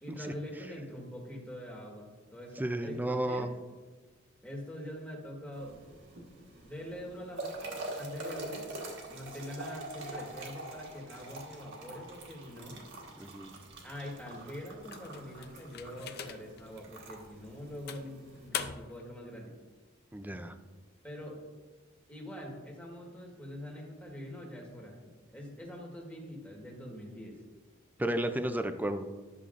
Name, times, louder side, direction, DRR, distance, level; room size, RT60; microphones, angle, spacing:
voice 1, 0.0-3.6 4.4-5.8 6.6-8.7 9.1-12.8 13.8-19.5 21.0-21.4 22.1-27.4, equal, 5° left, -1 dB, 1.5 m, -44 dB
voice 2, 2.6-3.5 13.2-13.6 20.1-20.5 28.0-29.1, right 1 dB, 10° right, 8 dB, 0.4 m, -32 dB
sound 1, 5.5-18.5, right 2 dB, 60° right, 1.4 m, -45 dB
sound 2, 14.9-16.6 17.2-17.3 17.9-19.1, left 8 dB, 50° left, 0.5 m, -41 dB
11.0 x 6.7 x 2.5 m, 1.3 s
head